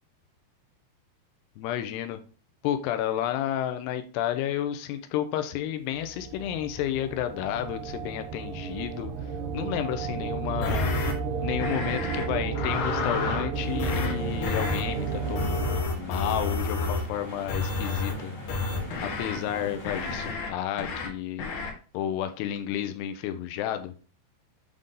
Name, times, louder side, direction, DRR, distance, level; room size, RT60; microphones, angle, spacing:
voice 1, 1.6-2.2 2.6-9.1 9.5-10.9 11.4-15.6 15.9-18.4 19.0-21.5 21.9-23.9, left 11 dB, 90° left, 8 dB, 2.7 m, -31 dB
sound 1, 5.9-15.8, right 5 dB, 75° right, 2.0 m, -32 dB
sound 2, 10.6-11.1 11.6-12.2 12.6-13.5 13.8-14.1 14.4-14.8 15.4-17.1 17.5-18.1 18.5-19.4 19.9-20.5 20.8-21.1 21.4-21.7, left 4 dB, 60° left, 2.5 m, -30 dB
sound 3, 13.5-20.3, left 1 dB, 30° left, 1.7 m, -40 dB
8.0 x 3.7 x 3.8 m, 0.38 s
omnidirectional pair, 4.7 m